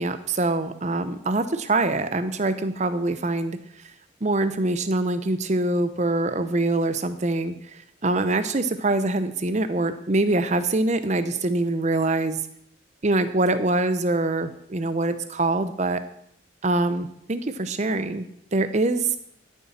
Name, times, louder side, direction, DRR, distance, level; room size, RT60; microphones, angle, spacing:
voice 1, 0.0-3.6 4.2-7.5 8.0-12.4 13.0-16.0 16.6-19.2, right 2 dB, 35° right, 11 dB, 0.6 m, -24 dB
12.5 x 7.3 x 4.3 m, 0.73 s
head